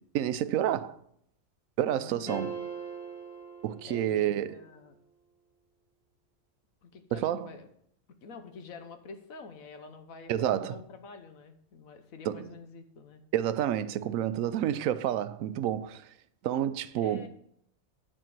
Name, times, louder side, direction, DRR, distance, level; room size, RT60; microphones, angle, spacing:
voice 1, 0.1-1.0 1.8-2.6 3.6-4.6 7.1-7.5 10.3-10.8 12.3-12.5 13.3-16.1 16.4-17.3, right 11 dB, 80° right, 1.0 m, -29 dB
voice 2, 1.9-2.5 3.8-5.0 6.8-7.7 8.2-13.2 17.0-17.3, left 4 dB, 85° left, 1.4 m, -47 dB
sound 1, 2.3-4.5, right 5 dB, 25° right, 1.7 m, -40 dB
10.0 x 4.5 x 7.5 m
omnidirectional pair, 1.4 m